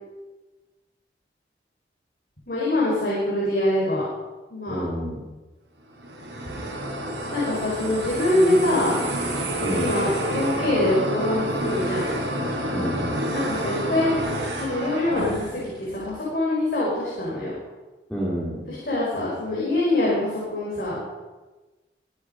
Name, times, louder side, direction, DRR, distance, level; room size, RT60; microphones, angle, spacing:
voice 1, 2.5-4.0 4.5-4.8 7.3-9.0 9.6-12.1 13.3-14.2 14.6-17.5 18.7-21.0, left 1 dB, 55° left, -6 dB, 5.1 m, -24 dB
voice 2, 4.7-5.2 9.6-9.9 12.7-13.3 18.1-18.6, equal, 5° left, -6 dB, 2.6 m, -29 dB
sound 1, 5.9-15.7, right 1 dB, 85° right, 4.0 m, -29 dB
23.0 x 9.9 x 5.3 m, 1.2 s
head